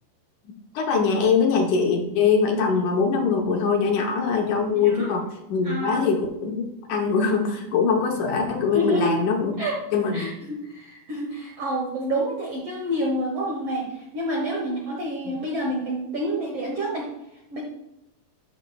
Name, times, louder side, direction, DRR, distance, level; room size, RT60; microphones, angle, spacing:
voice 1, 0.7-9.6 9.9-10.3 15.3-15.4, left 5 dB, 70° left, 1 dB, 2.1 m, -22 dB
voice 2, 4.7-5.1 5.6-6.1 8.7-9.1 9.6-9.7 10.1-17.1 17.5-17.6, equal, 70° right, -2 dB, 1.5 m, -28 dB
12.5 x 5.9 x 2.2 m, 0.88 s
omnidirectional pair, 4.1 m